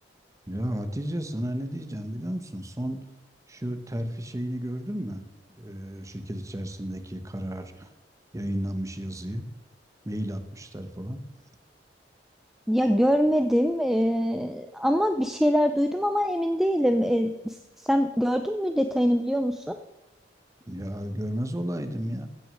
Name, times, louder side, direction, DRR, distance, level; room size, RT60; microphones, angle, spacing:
voice 1, 0.5-3.0 3.5-5.3 5.6-7.9 8.3-9.5 10.0-11.2 20.7-22.3, equal, 20° right, 8 dB, 1.0 m, -33 dB
voice 2, 12.7-19.8, equal, ahead, 7 dB, 0.4 m, -24 dB
16.0 x 6.2 x 6.4 m, 0.98 s
head